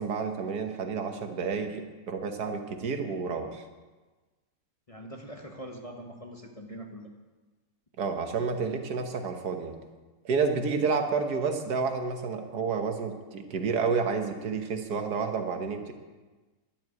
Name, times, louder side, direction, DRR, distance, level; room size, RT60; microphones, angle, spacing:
voice 1, 0.0-3.6 8.0-9.7 10.2-15.9, right 5 dB, 80° right, 5 dB, 1.8 m, -30 dB
voice 2, 4.9-7.1, right 1 dB, 25° left, 1 dB, 1.0 m, -43 dB
11.0 x 7.6 x 9.6 m, 1.3 s
omnidirectional pair, 1.7 m